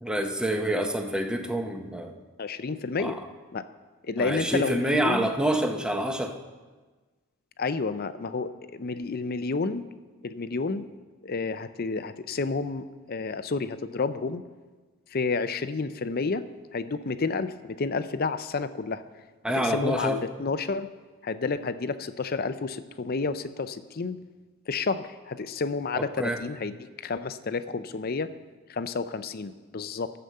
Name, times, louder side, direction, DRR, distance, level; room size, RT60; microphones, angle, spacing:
voice 1, 0.0-2.1 3.0-3.2 4.2-6.3 19.4-20.2 25.9-26.4, right 1 dB, 5° right, 4 dB, 0.8 m, -27 dB
voice 2, 2.4-3.2 3.5-3.6 4.1-5.3 7.6-9.8 10.2-10.9 11.2-14.4 15.1-16.4 16.7-19.0 19.6-20.9 21.2-24.2 24.7-28.3 28.7-30.1, left 4 dB, 45° left, 12 dB, 0.5 m, -30 dB
11.5 x 6.9 x 7.7 m, 1.3 s
head